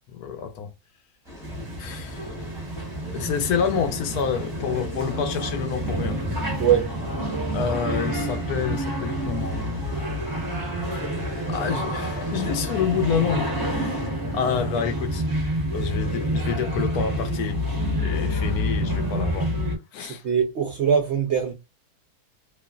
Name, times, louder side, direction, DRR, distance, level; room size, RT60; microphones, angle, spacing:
voice 1, 0.1-0.7 1.8-2.4 3.1-6.2 7.5-9.9 11.5-14.0 14.3-15.2 15.7-17.6 18.0-19.5 19.9-20.2, left 7 dB, 75° left, 1.1 m, -28 dB
sound 1, 1.2-14.1, left 1 dB, ahead, 1.0 m, -41 dB
sound 2, 1.4-19.8, equal, 20° right, 0.6 m, -28 dB
voice 2, 6.6-7.0 20.0-21.5, right 8 dB, 65° right, 0.7 m, -22 dB
3.0 x 2.4 x 2.3 m
omnidirectional pair, 1.7 m